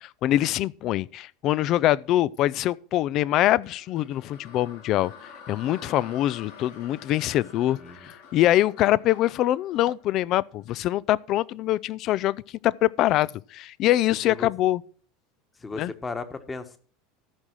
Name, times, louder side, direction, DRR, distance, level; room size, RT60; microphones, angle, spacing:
voice 1, 0.0-5.1 5.5-12.4 12.6-14.8 15.8-15.9, left 14 dB, 45° left, 0.4 m, -24 dB
sound 1, 3.6-10.8, left 5 dB, 65° left, 3.8 m, -48 dB
voice 2, 7.8-8.1 14.3-14.5 15.6-16.8, left 3 dB, 20° left, 1.4 m, -36 dB
14.0 x 6.0 x 4.7 m
figure-of-eight pair, 75°, 0 cm